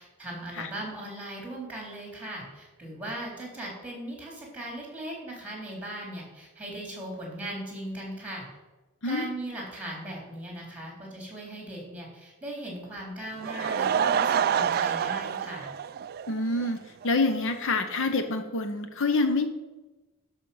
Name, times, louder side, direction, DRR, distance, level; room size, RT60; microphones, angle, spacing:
voice 1, 0.0-8.4 9.0-15.7, right 1 dB, 5° right, -1 dB, 3.3 m, -38 dB
Laughter / Crowd, 13.2-16.7 17.0-17.1 17.7-17.8 17.9-18.0, right 8 dB, 45° right, 0.3 m, -27 dB
voice 2, 16.3-19.5, left 3 dB, 60° left, 8 dB, 0.8 m, -27 dB
11.5 x 6.2 x 5.6 m, 1.2 s
head